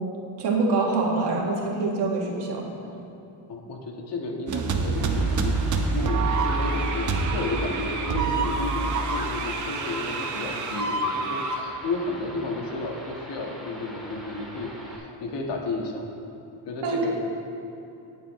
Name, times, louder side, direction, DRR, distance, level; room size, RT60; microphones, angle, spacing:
voice 1, 0.4-2.6 16.8-17.1, right 3 dB, 65° right, -2 dB, 1.9 m, -25 dB
voice 2, 3.5-5.6 5.9-16.0 16.7-17.3, left 2 dB, 65° left, 1 dB, 1.6 m, -32 dB
sound 1, 4.5-11.6, right 3 dB, 40° right, 0.9 m, -26 dB
sound 2, 5.0-15.0, equal, ahead, 1.7 m, -43 dB
18.5 x 6.9 x 3.1 m, 2.9 s
cardioid pair, 140°, 45 cm